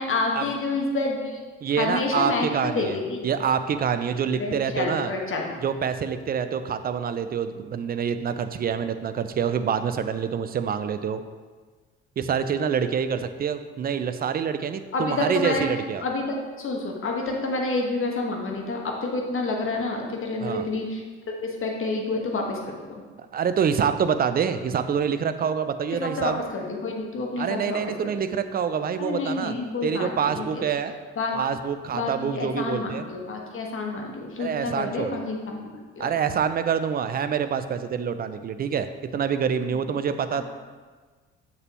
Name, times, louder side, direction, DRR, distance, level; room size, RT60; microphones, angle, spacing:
voice 1, 0.0-1.4 1.8-3.3 4.3-5.5 14.9-15.7 16.0-21.0 21.4-22.6 26.0-28.1 29.0-30.6 31.2-31.3 31.9-35.7 36.0-36.1 40.3-40.4, left 3 dB, 40° left, 0 dB, 1.5 m, -28 dB
voice 2, 1.6-3.0 3.2-5.1 5.6-11.2 12.2-16.0 20.4-20.7 23.3-26.4 27.4-29.5 29.8-30.9 31.3-33.1 34.4-35.2 36.0-40.4, right 7 dB, 30° right, 10 dB, 0.5 m, -26 dB
7.0 x 6.6 x 3.0 m, 1.4 s
figure-of-eight pair, 50°, 33 cm